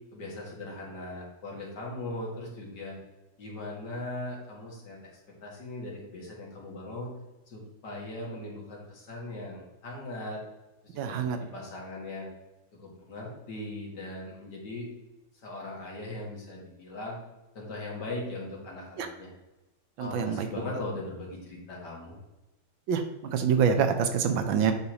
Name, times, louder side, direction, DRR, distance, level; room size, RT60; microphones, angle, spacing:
voice 1, 0.1-3.0 3.4-5.1 5.4-7.1 7.5-10.4 10.8-12.3 12.7-14.9 15.4-17.2 17.5-19.3 20.0-22.2, left 2 dB, 55° left, -3 dB, 2.3 m, -39 dB
voice 2, 11.0-11.4 19.0-19.1 20.0-20.5 22.9-24.7, right 7 dB, 75° right, 7 dB, 1.4 m, -26 dB
8.1 x 5.4 x 2.9 m, 1.1 s
omnidirectional pair, 2.2 m